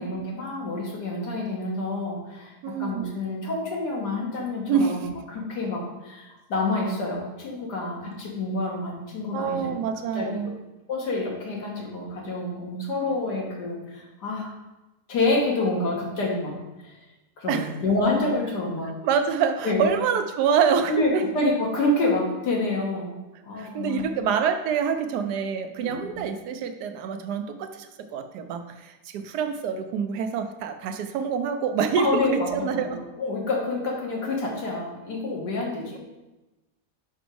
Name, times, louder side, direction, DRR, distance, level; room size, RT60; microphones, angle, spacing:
voice 1, 0.0-9.8 10.1-10.3 10.9-14.5 15.1-17.0 17.4-18.9 19.6-20.0 20.9-23.1 23.4-24.2 25.8-26.2 32.0-36.0, left 2 dB, 80° left, -2 dB, 2.0 m, -28 dB
voice 2, 2.6-3.0 4.7-5.0 9.3-10.5 17.5-17.7 19.0-21.2 23.5-33.0, right 7 dB, 80° right, 8 dB, 1.2 m, -26 dB
5.3 x 5.1 x 4.6 m, 1.1 s
omnidirectional pair, 1.7 m